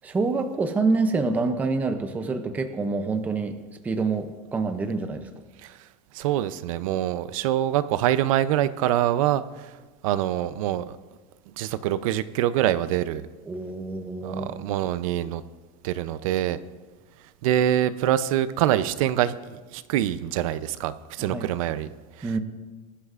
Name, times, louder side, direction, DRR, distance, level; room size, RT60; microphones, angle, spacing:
voice 1, 0.0-3.5 3.8-5.3 13.5-14.6 21.2-21.5 22.2-22.4, right 3 dB, 10° right, 6 dB, 0.5 m, -26 dB
voice 2, 6.1-9.7 10.0-11.0 11.6-13.2 14.2-15.4 15.8-16.6 17.4-21.9 22.2-22.3, right 12 dB, 60° right, 14 dB, 0.6 m, -25 dB
21.0 x 11.5 x 2.5 m, 1.3 s
supercardioid pair, 175°, 20 cm